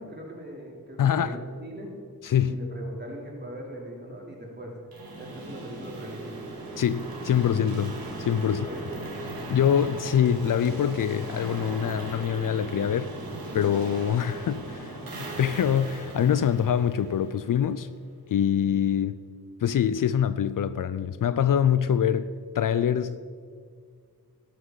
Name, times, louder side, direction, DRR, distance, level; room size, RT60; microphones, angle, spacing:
voice 1, 0.0-1.9 2.4-4.9 5.2-6.3 8.5-9.0, right 1 dB, 30° right, 3.3 m, -40 dB
voice 2, 1.0-1.4 2.2-2.6 6.8-8.6 9.5-13.1 13.5-17.9 18.3-19.2 19.6-23.2, left 9 dB, 60° left, 0.5 m, -24 dB
sound 1, 4.9-17.8, right 2 dB, 75° right, 2.1 m, -38 dB
12.5 x 12.0 x 4.0 m
cardioid pair, 60°, 36 cm